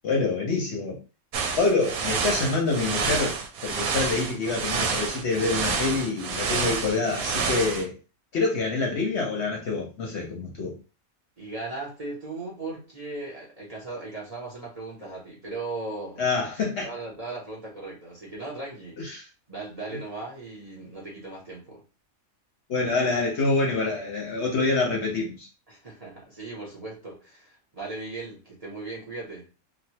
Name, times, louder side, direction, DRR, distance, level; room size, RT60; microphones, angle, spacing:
voice 1, 0.0-1.0 1.6-7.9 8.3-10.7 16.2-16.9 19.0-19.3 19.9-20.0 22.7-25.5, left 3 dB, 60° left, 0.9 m, -26 dB
sound 1, 1.3-7.8, right 5 dB, 85° right, 1.0 m, -28 dB
voice 2, 11.4-16.2 16.8-19.0 19.5-21.8 25.7-29.4, right 3 dB, 30° right, 0.8 m, -37 dB
3.1 x 2.3 x 2.7 m
omnidirectional pair, 1.5 m